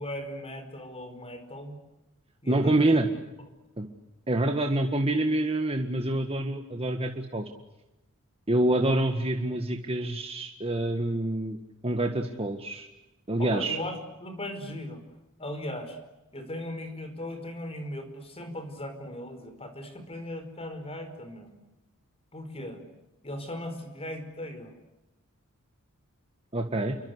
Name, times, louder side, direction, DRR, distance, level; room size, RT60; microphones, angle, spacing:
voice 1, 0.0-1.8 2.4-2.9 13.4-15.0 15.4-16.0 16.3-21.5 22.3-22.8 23.2-24.7, left 1 dB, 30° left, 8 dB, 5.0 m, -38 dB
voice 2, 2.5-3.1 3.8-3.9 4.3-7.5 8.5-11.6 11.8-12.9 13.3-13.8 26.5-27.0, right 1 dB, 25° right, 4 dB, 1.8 m, -26 dB
29.0 x 24.0 x 8.1 m, 0.97 s
head